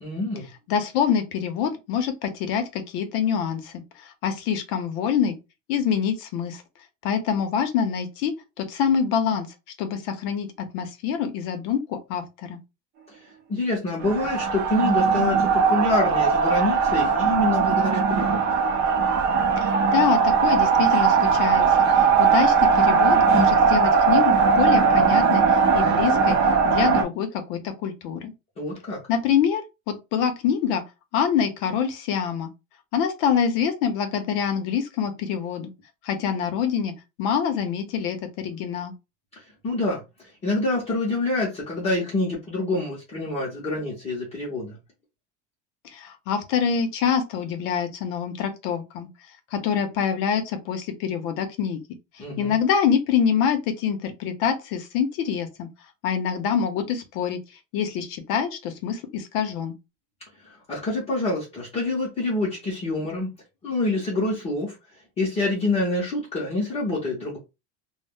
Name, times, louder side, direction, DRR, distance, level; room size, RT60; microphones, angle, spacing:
voice 1, 0.0-0.5 13.5-18.4 28.6-29.0 39.6-40.0 40.4-44.8 52.2-52.5 60.7-63.3 63.6-64.8 65.2-67.4, left 2 dB, 20° left, 0.5 m, -26 dB
voice 2, 0.7-3.8 4.2-5.4 5.7-6.6 7.0-9.5 9.8-12.6 19.6-21.6 22.2-26.4 26.6-28.3 29.1-30.8 31.1-32.5 32.9-35.7 36.0-36.9 37.2-38.9 45.9-49.1 49.5-51.8 52.4-55.7 56.0-57.4 57.7-59.7, left 7 dB, 60° left, 0.7 m, -25 dB
sound 1, 14.0-27.0, right 5 dB, 35° right, 0.4 m, -19 dB
2.1 x 2.0 x 3.4 m
cardioid pair, 180°, 33 cm